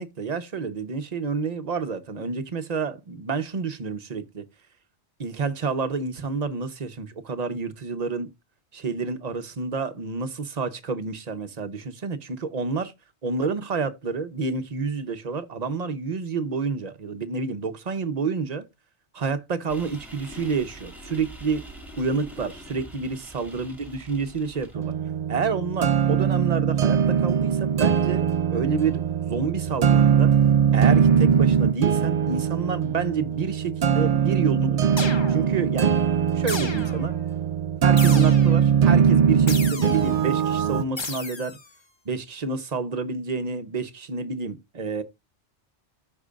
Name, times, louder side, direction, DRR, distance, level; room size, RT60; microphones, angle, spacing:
voice 1, 0.0-4.4 5.2-8.3 8.7-12.9 13.2-18.7 19.1-21.6 22.0-24.9 25.3-30.3 30.7-34.8 35.3-36.0 36.3-37.1 37.8-41.6 42.0-45.0, right 4 dB, 40° right, 0.8 m, -29 dB
sound 1, 19.7-24.8, right 1 dB, ahead, 1.9 m, -44 dB
sound 2, 24.7-40.8, right 8 dB, 60° right, 0.4 m, -21 dB
sound 3, 35.0-35.7 36.5-37.2 38.0-38.7 39.5-40.2 41.0-41.7, left 3 dB, 25° left, 0.7 m, -34 dB
13.5 x 4.5 x 2.4 m
omnidirectional pair, 1.2 m